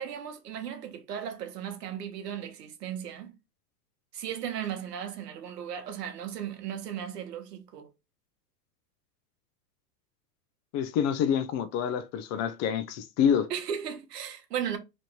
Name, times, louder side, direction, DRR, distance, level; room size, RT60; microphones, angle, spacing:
voice 1, 0.0-3.3 4.1-7.9 13.5-14.8, right 9 dB, 90° right, 1.1 m, -36 dB
voice 2, 10.7-13.5, left 8 dB, 35° left, 0.5 m, -27 dB
3.2 x 2.8 x 4.2 m
hypercardioid pair, 115°, 47 cm